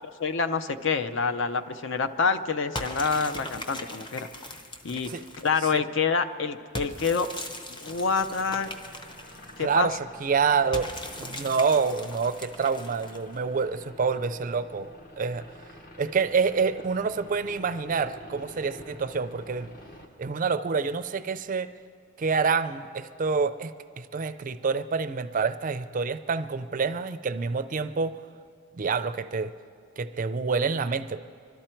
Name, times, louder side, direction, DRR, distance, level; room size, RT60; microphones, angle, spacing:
voice 1, 0.2-4.3 4.8-5.1 5.4-7.3 7.7-8.7 9.6-9.9, left 5 dB, 60° left, 9 dB, 0.6 m, -27 dB
sound 1, 2.8-5.7 6.8-9.7 10.7-13.4, left 1 dB, 25° left, 0.8 m, -39 dB
sound 2, 7.8-20.1, left 1 dB, 45° left, 1.2 m, -49 dB
voice 2, 9.6-10.9 11.2-14.9 15.2-15.4 16.0-19.7 20.2-21.7 22.2-23.7 24.0-28.2 28.8-29.5 30.0-31.2, right 5 dB, 40° right, 12 dB, 0.4 m, -27 dB
25.0 x 12.5 x 4.5 m, 2.2 s
head